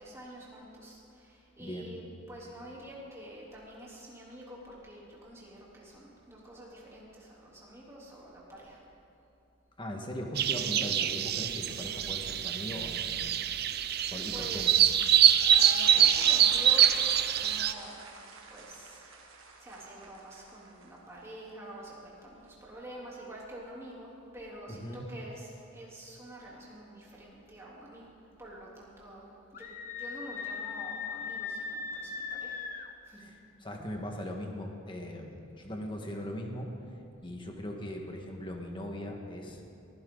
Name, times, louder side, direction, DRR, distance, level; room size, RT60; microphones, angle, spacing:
voice 1, 0.0-2.0 2.3-8.8 14.3-15.0 15.6-18.0 18.5-19.3 19.6-32.6 33.0-33.2, right 1 dB, 15° right, -6 dB, 3.5 m, -47 dB
voice 2, 1.6-1.9 9.8-13.0 13.3-13.4 14.1-14.7 16.0-16.1 24.7-25.0 33.2-33.4 33.6-36.7 37.2-39.7, equal, 25° left, 2 dB, 1.7 m, -39 dB
sound 1, 10.4-17.7, right 10 dB, 50° right, 0.6 m, -25 dB
sound 2, 15.2-21.2, right 3 dB, 85° right, 1.9 m, -46 dB
Screaming, 29.5-32.9, left 5 dB, 40° left, 1.0 m, -38 dB
23.0 x 15.5 x 4.0 m, 2.8 s
head